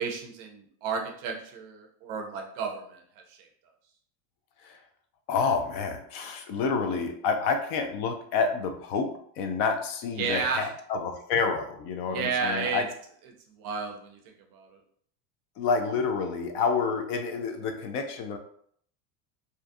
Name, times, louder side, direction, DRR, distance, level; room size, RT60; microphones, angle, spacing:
voice 1, 0.0-3.0 10.2-10.7 12.1-12.9 13.6-14.2 14.5-14.7, right 5 dB, 45° right, 2 dB, 0.5 m, -31 dB
voice 2, 5.3-9.1 9.4-12.8 15.6-18.4, left 5 dB, 55° left, 5 dB, 0.5 m, -28 dB
2.5 x 2.3 x 2.5 m, 0.62 s
supercardioid pair, 135°, 49 cm